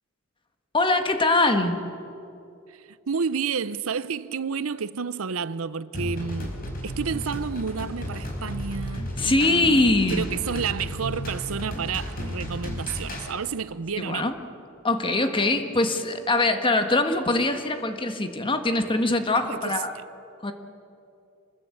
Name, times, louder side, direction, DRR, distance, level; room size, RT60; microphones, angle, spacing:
voice 1, 0.7-1.8 9.2-10.2 14.0-14.3 14.8-19.9 20.4-20.5, left 2 dB, 25° left, 1.6 m, -22 dB
voice 2, 3.1-6.5 6.8-14.3 19.4-19.7, right 6 dB, 90° right, 0.7 m, -30 dB
sound 1, 5.9-13.3, equal, 45° left, 5.0 m, -33 dB
27.5 x 20.0 x 8.5 m
head